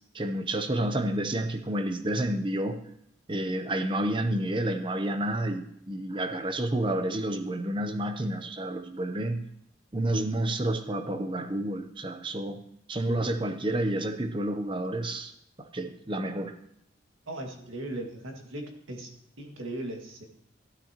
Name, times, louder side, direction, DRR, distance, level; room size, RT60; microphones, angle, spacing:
voice 1, 0.1-2.8 3.3-9.4 9.9-12.6 12.9-15.3 15.6-16.5, right 1 dB, 25° right, 8 dB, 0.7 m, -30 dB
voice 2, 17.3-19.1 19.4-20.3, right 1 dB, 90° right, 2 dB, 1.9 m, -38 dB
13.0 x 12.0 x 2.9 m, 0.73 s
head